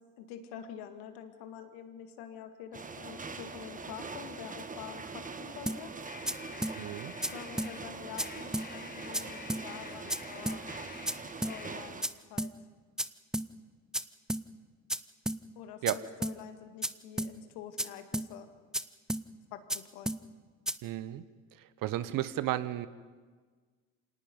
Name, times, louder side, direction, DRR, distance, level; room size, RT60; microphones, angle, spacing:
voice 1, 0.2-6.0 7.3-10.6 11.5-12.5 15.6-18.5 19.5-20.1, left 9 dB, 70° left, 7 dB, 2.1 m, -47 dB
sound 1, 2.7-12.0, right 4 dB, 20° right, 1.4 m, -43 dB
sound 2, 5.7-5.8 6.3-6.4 6.6-6.8 7.2-7.3 7.6-7.7 8.2-8.3 8.5-8.7 9.1-9.2 9.5-9.6 10.1-10.2 10.5-10.6 11.1-11.2 11.4-11.6 12.0-12.1 12.4-12.5 13.0-13.1 13.3-13.5 13.9-14.0 14.3-14.4 14.9-15.0 15.3-15.4 15.9-16.0 16.2-16.4 16.8-16.9 17.2-17.3 17.8-17.9 18.1-18.3 18.7-18.8 19.1-19.2 19.7-19.8 20.1-20.2 20.7-20.8, right 1 dB, ahead, 0.5 m, -32 dB
sound 3, 6.0-11.9, left 5 dB, 20° left, 1.3 m, -49 dB
voice 2, 6.8-7.1 15.8-16.0 20.8-21.2 21.6-22.9, right 13 dB, 55° right, 15 dB, 1.0 m, -33 dB
26.0 x 18.5 x 5.5 m, 1.5 s
hypercardioid pair, 75°, 41 cm